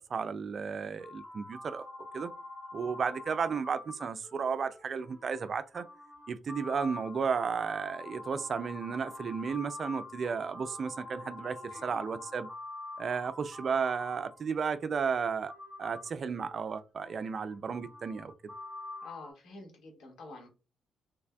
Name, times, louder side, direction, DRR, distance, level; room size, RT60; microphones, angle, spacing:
voice 1, 0.0-1.9 2.1-2.3 2.7-5.9 6.3-12.5 13.0-15.5 15.8-18.5, right 6 dB, 45° right, 0.3 m, -33 dB
sound 1, 1.0-14.8 15.5-19.3, left 2 dB, 5° right, 1.4 m, -46 dB
voice 2, 19.0-20.5, left 2 dB, 75° left, 1.7 m, -48 dB
3.4 x 3.3 x 2.2 m
cardioid pair, 90°, 0 cm